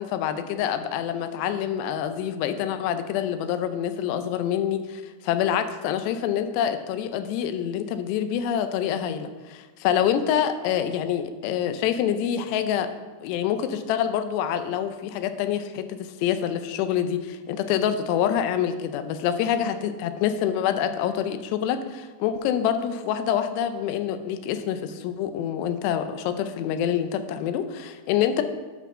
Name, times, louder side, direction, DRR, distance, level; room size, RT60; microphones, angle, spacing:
voice 1, 0.0-12.9 13.2-28.4, left 9 dB, 85° left, 9 dB, 2.7 m, -26 dB
9.0 x 4.6 x 6.0 m, 1.3 s
omnidirectional pair, 4.8 m